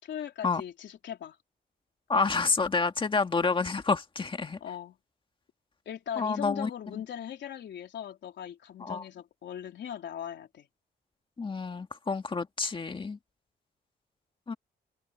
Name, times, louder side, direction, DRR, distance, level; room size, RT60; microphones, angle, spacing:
voice 1, 0.0-1.4 4.6-5.0 5.8-10.7, left 9 dB, 80° left, 3.5 m, -39 dB
voice 2, 2.1-4.6 6.2-6.7 8.8-9.0 11.4-13.2 14.5-14.6, left 4 dB, 30° left, 2.0 m, -28 dB
wide cardioid pair, 130°, 18 cm